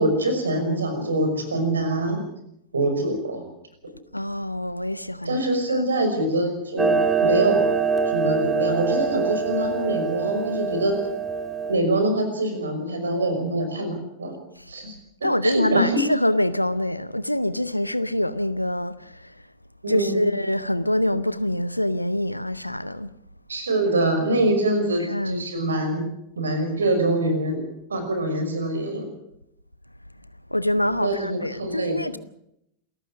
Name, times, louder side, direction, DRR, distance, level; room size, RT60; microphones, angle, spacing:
voice 1, 0.0-2.2 2.7-3.5 3.8-3.9 5.3-7.6 8.1-11.0 11.7-14.4 14.7-15.0 15.2-16.0 19.8-20.2 23.5-26.1 26.4-29.1 31.0-32.0, right 1 dB, 70° right, 5.7 m, -24 dB
voice 2, 4.1-5.4 5.7-5.8 15.2-19.2 19.9-23.1 25.0-25.4 30.5-32.2, left 1 dB, 90° left, 0.7 m, -25 dB
Clock, 6.8-11.8, right 5 dB, 10° right, 2.1 m, -24 dB
27.5 x 14.5 x 6.4 m
figure-of-eight pair, 90°, 0 cm